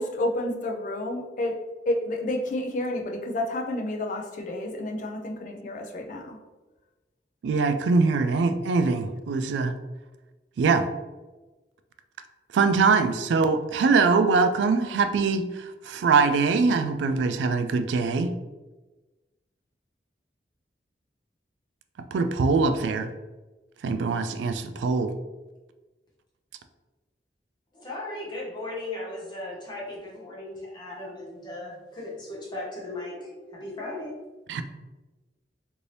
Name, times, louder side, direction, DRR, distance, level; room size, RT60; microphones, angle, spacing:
voice 1, 0.0-1.6 1.9-6.4, left 1 dB, 45° left, 3 dB, 0.4 m, -30 dB
voice 2, 7.4-9.7 10.6-10.9 12.5-18.3 22.1-23.1 23.8-25.1 34.5-34.6, right 4 dB, 85° right, 9 dB, 0.3 m, -23 dB
voice 3, 27.7-34.1, left 2 dB, 25° left, -4 dB, 0.8 m, -37 dB
2.7 x 2.6 x 3.2 m, 1.2 s
head